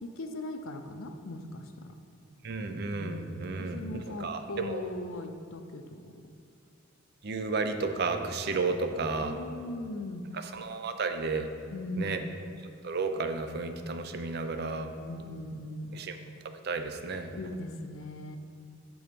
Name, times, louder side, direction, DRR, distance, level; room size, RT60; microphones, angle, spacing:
voice 1, 0.0-1.6 2.9-6.1 9.2-10.2 11.7-12.2 15.0-15.9 17.3-18.4, left 2 dB, 80° left, 7 dB, 0.6 m, -39 dB
voice 2, 2.4-4.8 7.2-9.4 10.5-11.5 12.0-12.2 12.8-14.9 15.9-16.2 16.6-17.3, right 4 dB, 50° right, 7 dB, 0.5 m, -32 dB
7.0 x 6.2 x 5.2 m, 2.3 s
head